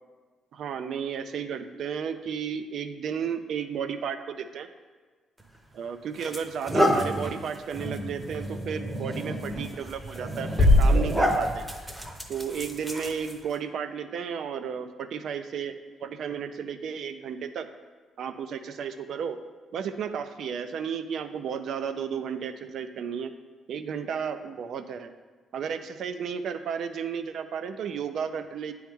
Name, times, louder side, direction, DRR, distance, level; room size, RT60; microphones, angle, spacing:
voice 1, 0.5-4.7 5.7-11.7 12.3-17.7 18.2-19.4 19.7-23.3 23.7-25.1 25.5-28.7, right 7 dB, 70° right, 9 dB, 0.4 m, -33 dB
sound 1, 5.4-5.6 6.1-13.5, equal, 10° right, 0.7 m, -30 dB
sound 2, 10.6-12.5, left 1 dB, 35° left, 0.7 m, -22 dB
9.0 x 3.0 x 3.5 m, 1.4 s
cardioid pair, 90°, 0 cm